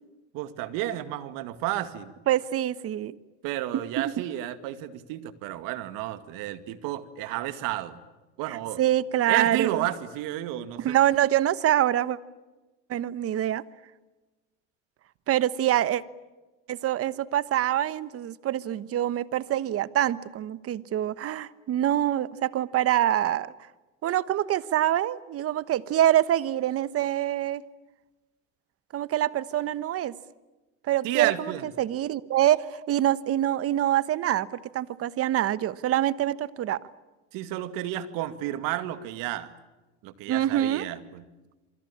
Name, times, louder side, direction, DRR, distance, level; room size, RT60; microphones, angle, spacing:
voice 1, 0.3-2.1 3.4-8.0 8.4-8.8 9.3-11.0 31.0-31.6 37.3-39.5 40.0-41.2, right 14 dB, 65° right, 12 dB, 2.3 m, -31 dB
voice 2, 2.3-3.2 4.0-4.1 8.5-9.9 10.8-12.2 12.9-13.6 15.3-16.0 16.7-23.5 24.0-27.6 28.9-30.2 30.8-31.5 31.8-36.8 40.3-40.9, right 12 dB, 40° right, 17 dB, 1.2 m, -25 dB
27.5 x 25.0 x 8.7 m, 1.2 s
supercardioid pair, 105°, 36 cm